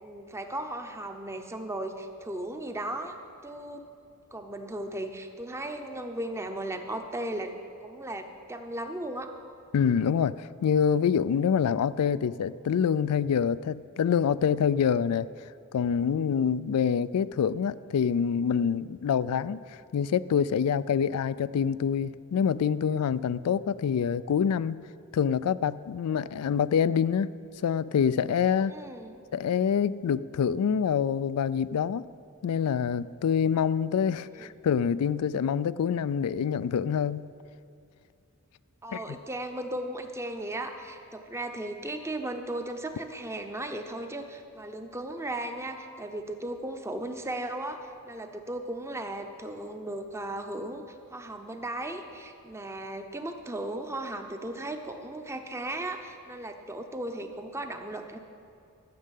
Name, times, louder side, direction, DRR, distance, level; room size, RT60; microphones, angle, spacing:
voice 1, 0.0-3.2 3.4-3.9 4.3-7.6 7.8-9.3 28.7-29.2 34.3-34.5 38.8-58.2, right 1 dB, 10° right, 5 dB, 0.7 m, -36 dB
voice 2, 9.7-15.3 15.7-19.6 19.9-24.8 25.1-27.3 27.6-28.7 29.3-32.1 32.4-37.3 38.9-39.2, left 7 dB, 85° left, 17 dB, 0.3 m, -26 dB
12.5 x 6.6 x 8.2 m, 2.5 s
head